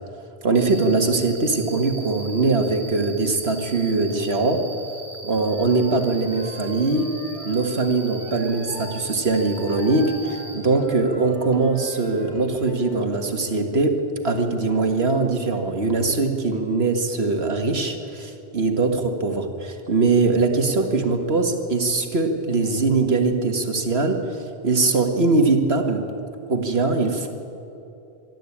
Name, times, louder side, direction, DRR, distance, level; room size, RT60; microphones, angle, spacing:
voice 1, 0.4-4.6 5.2-7.1 7.5-26.1 26.5-27.3, right 3 dB, 70° right, 4 dB, 1.9 m, -22 dB
Cricket, 0.5-10.5, right 2 dB, 50° right, 4.8 m, -40 dB
Wind instrument woodwind instrument, 5.4-9.0 9.2-13.1, equal, 30° left, 5.6 m, -41 dB
24.5 x 12.5 x 8.6 m, 2.9 s
omnidirectional pair, 1.1 m